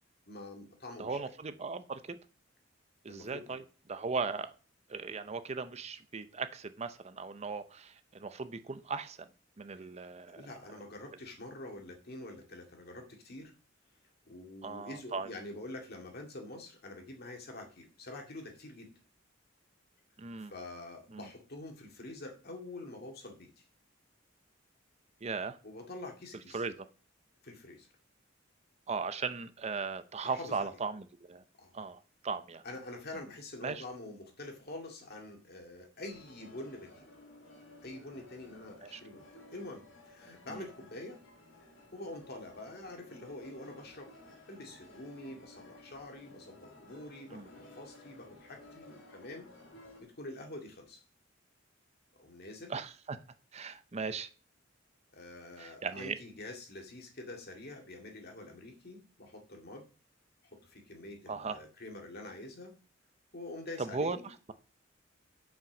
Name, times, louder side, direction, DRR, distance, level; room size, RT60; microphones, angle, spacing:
voice 1, 0.3-1.2 3.1-3.6 9.7-9.9 10.3-13.5 14.3-18.9 20.4-23.6 25.6-26.6 27.4-27.9 30.2-30.7 31.6-31.7 32.6-37.1 37.8-41.2 41.9-44.1 44.5-49.5 50.0-51.0 52.2-52.7 55.1-59.8 60.4-62.8 63.3-64.3, left 2 dB, 55° left, 2.1 m, -46 dB
voice 2, 1.0-2.2 3.0-3.6 3.9-4.5 4.9-9.3 9.6-10.4 14.6-15.3 20.2-20.5 21.1-21.2 25.2-25.6 26.5-26.7 28.9-31.4 31.7-32.6 33.6-33.8 38.8-39.0 40.5-40.6 47.3-47.4 52.7-53.2 53.5-54.3 55.6-56.2 61.3-61.6 63.8-64.2, right 4 dB, 35° right, 0.6 m, -37 dB
sound 1, 36.0-50.0, left 2 dB, 70° left, 2.6 m, -56 dB
7.6 x 5.8 x 6.2 m
head